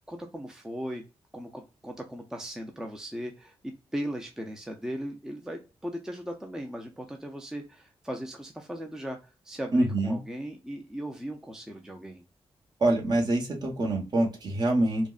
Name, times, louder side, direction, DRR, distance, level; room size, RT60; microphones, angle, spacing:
voice 1, 0.1-1.0 1.3-9.2 9.4-12.2, equal, 5° right, 2 dB, 0.5 m, -38 dB
voice 2, 9.7-10.2 12.8-15.1, right 1 dB, 45° right, 0 dB, 1.2 m, -25 dB
5.0 x 2.1 x 2.4 m, 0.30 s
wide cardioid pair, 125°, 10 cm